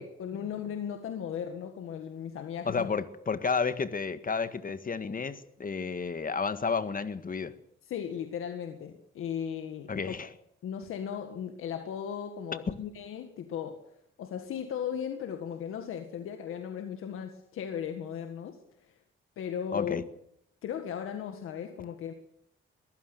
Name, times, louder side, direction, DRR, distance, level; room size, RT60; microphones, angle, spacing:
voice 1, 0.0-2.9 7.8-10.1 10.6-13.8 14.2-19.0 19.4-20.0 20.6-22.1, left 8 dB, 90° left, 1.8 m, -37 dB
voice 2, 2.7-7.5 9.9-10.3 12.7-12.8 19.7-20.0, left 5 dB, 40° left, 1.8 m, -31 dB
22.0 x 15.5 x 8.1 m
cardioid pair, 70°, 21 cm